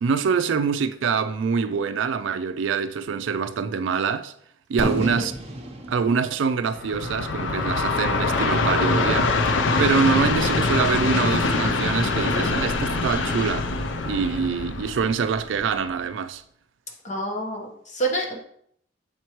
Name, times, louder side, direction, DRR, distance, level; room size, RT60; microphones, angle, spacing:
voice 1, 0.0-4.3 4.7-5.3 5.9-9.3 9.8-13.7 14.1-16.4, right 5 dB, 75° right, 0.4 m, -25 dB
voice 2, 4.8-5.3 17.0-18.4, right 2 dB, 40° left, 1.1 m, -28 dB
Fireworks, 4.8-8.6, right 1 dB, 35° right, 0.8 m, -32 dB
Train, 6.7-16.0, left 3 dB, 75° left, 0.6 m, -24 dB
7.1 x 4.6 x 3.0 m
head